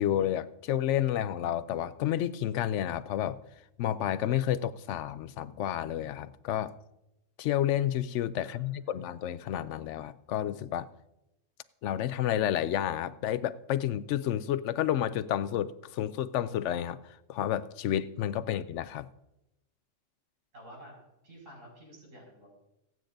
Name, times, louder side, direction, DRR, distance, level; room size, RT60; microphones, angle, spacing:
voice 1, 0.0-3.4 3.8-6.7 7.4-10.9 11.8-19.1, left 11 dB, 70° left, 0.9 m, -30 dB
voice 2, 8.4-8.9 20.5-21.0 21.2-22.5, equal, 75° right, 6.2 m, -51 dB
25.5 x 9.2 x 2.6 m
omnidirectional pair, 1.3 m